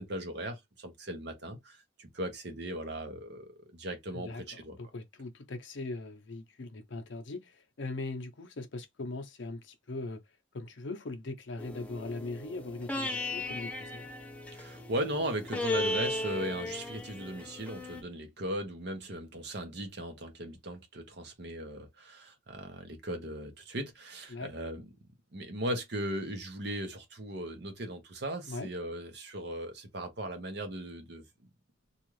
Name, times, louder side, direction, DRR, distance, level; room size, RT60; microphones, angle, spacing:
voice 1, 0.0-4.8 14.5-24.8 25.3-31.2, right 1 dB, 60° right, 0.8 m, -38 dB
voice 2, 4.1-10.2 10.5-14.1 24.3-24.5 28.5-28.7, left 2 dB, 65° left, 0.6 m, -40 dB
sound 1, 11.6-18.0, left 2 dB, 5° left, 0.4 m, -36 dB
2.6 x 2.4 x 3.1 m
head